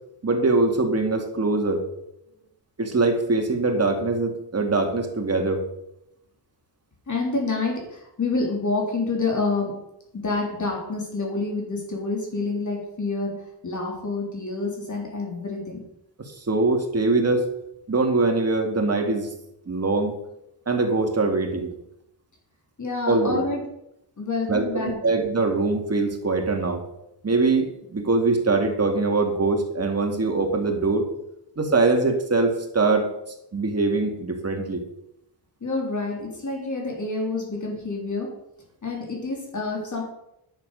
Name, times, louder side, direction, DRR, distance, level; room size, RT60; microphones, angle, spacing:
voice 1, 0.2-1.9 2.8-5.6 16.2-17.4 17.9-19.3 19.7-20.2 20.7-21.7 23.1-23.4 24.5-26.8 27.2-31.1 31.6-33.1 33.5-34.8, right 3 dB, 35° right, 3 dB, 2.2 m, -22 dB
voice 2, 7.1-9.8 10.1-15.8 22.8-23.6 24.2-25.1 35.6-38.3 38.8-40.0, left 3 dB, 45° left, -1 dB, 3.3 m, -28 dB
10.5 x 6.8 x 6.6 m, 0.81 s
wide cardioid pair, 110°, 41 cm